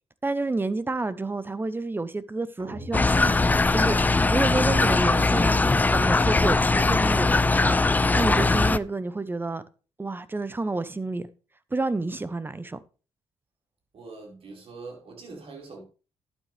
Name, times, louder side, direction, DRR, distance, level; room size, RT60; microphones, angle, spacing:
voice 1, 0.2-5.6 5.9-7.8 8.2-9.6 10.0-11.3 11.7-12.8, right 3 dB, 20° right, 0.8 m, -29 dB
sound 1, 2.6-4.7, right 1 dB, 40° right, 2.2 m, -45 dB
sound 2, 2.9-8.8, left 3 dB, 15° left, 0.5 m, -21 dB
voice 2, 13.9-15.8, right 3 dB, 60° right, 4.8 m, -43 dB
11.5 x 9.2 x 3.3 m
cardioid pair, 80°, 11 cm